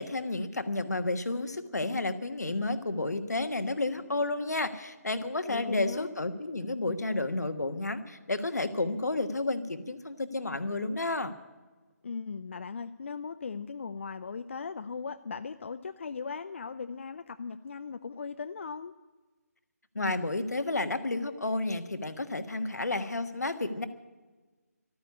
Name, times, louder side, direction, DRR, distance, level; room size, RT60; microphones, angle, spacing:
voice 1, 0.0-11.3 19.9-23.9, left 2 dB, 80° left, 9 dB, 1.4 m, -31 dB
voice 2, 5.5-6.1 12.0-18.9, left 5 dB, 45° left, 10 dB, 0.5 m, -38 dB
13.5 x 9.7 x 9.7 m, 1.2 s
figure-of-eight pair, 155°, 9 cm